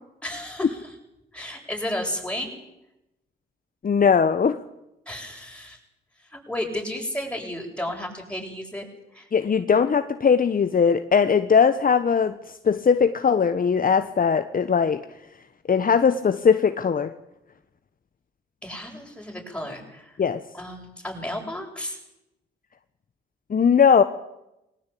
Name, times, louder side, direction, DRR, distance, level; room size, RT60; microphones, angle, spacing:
voice 1, 0.2-0.9 1.3-2.6 5.1-5.8 6.3-8.9 9.1-9.3 18.6-20.1 20.5-22.0, left 1 dB, 5° left, 1 dB, 7.8 m, -33 dB
voice 2, 3.8-4.6 9.3-12.4 12.6-15.0 15.7-17.1 20.2-20.4 23.5-24.0, left 6 dB, 40° left, 10 dB, 1.2 m, -19 dB
20.5 x 18.0 x 8.6 m, 0.89 s
supercardioid pair, 55°, 21 cm